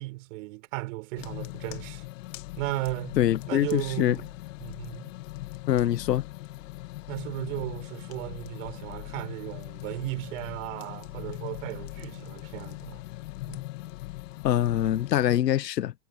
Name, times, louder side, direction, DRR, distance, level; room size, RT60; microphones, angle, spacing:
voice 1, 0.0-2.0 2.6-3.2 3.5-4.3 4.6-5.1 7.1-13.0 13.5-13.6, right 22 dB, 50° right, 4.3 m, -35 dB
sound 1, 1.1-15.4, left 18 dB, 50° left, 1.3 m, -40 dB
voice 2, 3.2-4.2 5.7-6.3 14.4-15.9, left 12 dB, 80° left, 1.1 m, -24 dB
hypercardioid pair, 130°, 48 cm